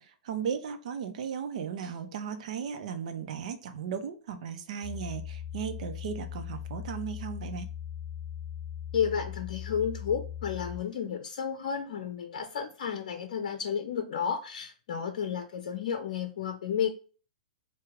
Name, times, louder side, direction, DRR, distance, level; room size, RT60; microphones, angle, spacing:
voice 1, 0.0-7.7, right 7 dB, 60° right, 0.7 m, -36 dB
sound 1, 4.8-10.8, left 10 dB, 15° left, 0.4 m, -39 dB
voice 2, 8.9-16.9, left 7 dB, 60° left, 0.6 m, -32 dB
4.5 x 2.3 x 3.6 m
hypercardioid pair, 110°, 4 cm